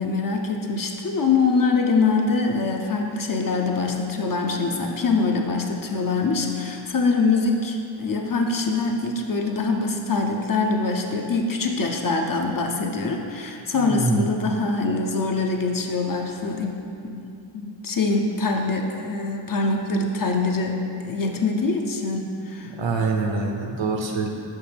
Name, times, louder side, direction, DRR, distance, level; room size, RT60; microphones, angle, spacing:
voice 1, 0.0-22.7, left 3 dB, 45° left, 2 dB, 0.6 m, -24 dB
voice 2, 13.7-14.2 22.8-24.3, right 3 dB, 75° right, 1 dB, 0.8 m, -25 dB
6.4 x 5.0 x 3.4 m, 2.5 s
wide cardioid pair, 95°, 46 cm